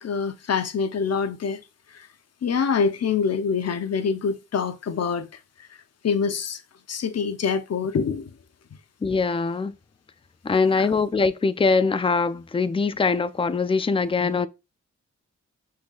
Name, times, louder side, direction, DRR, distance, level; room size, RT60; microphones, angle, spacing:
voice 1, 0.0-1.6 1.9-2.1 2.4-5.3 6.0-6.6 6.9-8.3 10.8-10.9, left 6 dB, 60° left, 0.8 m, -25 dB
voice 2, 9.0-9.7 10.4-14.5, left 4 dB, 20° left, 0.4 m, -22 dB
5.7 x 3.8 x 2.4 m
cardioid pair, 60°, 30 cm